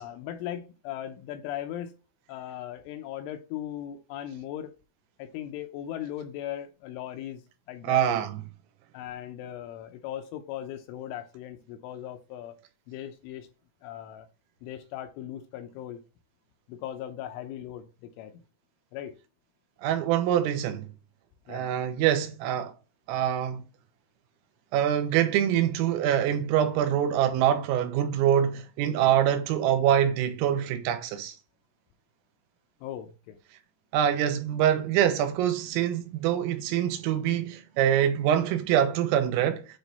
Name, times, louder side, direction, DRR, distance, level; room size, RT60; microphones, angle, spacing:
voice 1, 0.0-1.9 2.3-4.8 5.2-7.4 7.7-8.1 8.9-12.6 12.9-13.5 13.8-14.3 14.6-16.0 16.7-18.3 18.9-19.2 21.5-21.7 32.8-33.4, left 11 dB, 80° left, 3.0 m, -38 dB
voice 2, 7.8-8.4 19.8-20.9 21.5-22.7 23.1-23.6 24.7-31.4 33.9-39.7, right 10 dB, 85° right, 3.5 m, -25 dB
9.1 x 3.2 x 4.0 m
omnidirectional pair, 5.9 m